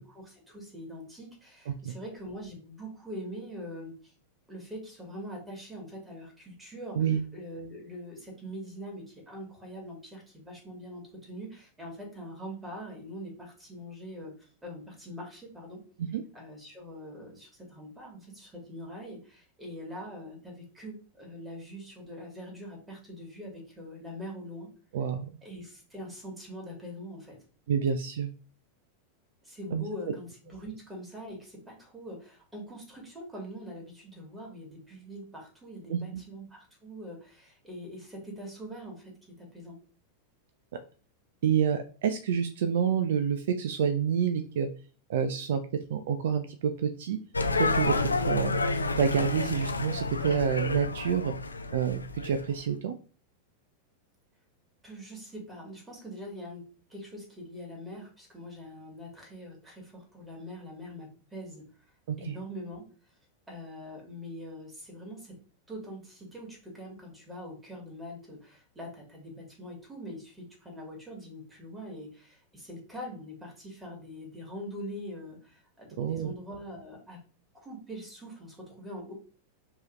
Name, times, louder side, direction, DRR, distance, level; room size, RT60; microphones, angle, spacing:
voice 1, 0.0-4.1 4.5-7.0 7.3-15.8 16.3-24.7 25.4-27.4 29.4-39.8 54.8-61.6 62.2-62.8 63.5-65.4 65.7-77.2 77.6-79.1, equal, 10° right, -1 dB, 2.0 m, -43 dB
voice 2, 24.9-25.3 27.7-28.3 29.7-29.8 35.9-36.2 41.4-44.7 45.1-45.6 45.9-47.2 47.6-47.9 48.3-48.6 49.0-51.3 51.7-52.9 62.1-62.4 76.0-76.3, right 7 dB, 55° right, 8 dB, 0.4 m, -28 dB
sound 1, 47.3-52.5, left 3 dB, 80° left, 0.4 m, -30 dB
4.5 x 2.9 x 3.0 m, 0.38 s
figure-of-eight pair, 90°, 0 cm